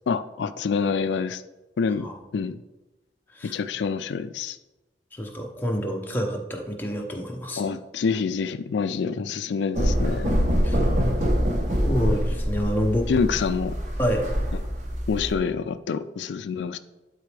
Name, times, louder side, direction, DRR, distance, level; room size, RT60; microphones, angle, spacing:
voice 1, 0.1-1.4 1.8-2.1 2.3-2.6 3.4-4.6 7.6-10.3 13.1-13.8 15.1-16.8, left 5 dB, 85° left, 11 dB, 0.4 m, -26 dB
voice 2, 5.1-7.7 10.6-11.1 11.8-13.1 14.0-14.3, equal, 10° left, 1 dB, 0.8 m, -28 dB
sound 1, 9.7-15.4, equal, 45° right, 1.0 m, -24 dB
11.5 x 4.1 x 3.3 m, 1.1 s
head